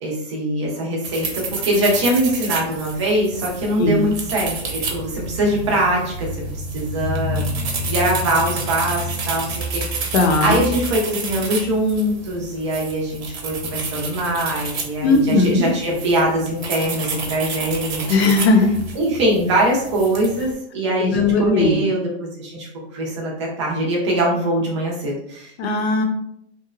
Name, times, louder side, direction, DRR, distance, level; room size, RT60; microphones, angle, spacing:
voice 1, 0.0-6.3 6.5-7.4 7.8-18.3 18.9-25.5, right 1 dB, 25° right, -3 dB, 0.5 m, -22 dB
sound 1, 1.0-20.5, right 2 dB, 70° right, 0.8 m, -29 dB
voice 2, 10.1-10.6 15.0-15.7 18.1-18.8 21.0-21.8 25.6-26.0, left 3 dB, 70° left, 3 dB, 0.7 m, -17 dB
2.9 x 2.1 x 2.4 m, 0.73 s
supercardioid pair, 180°, 33 cm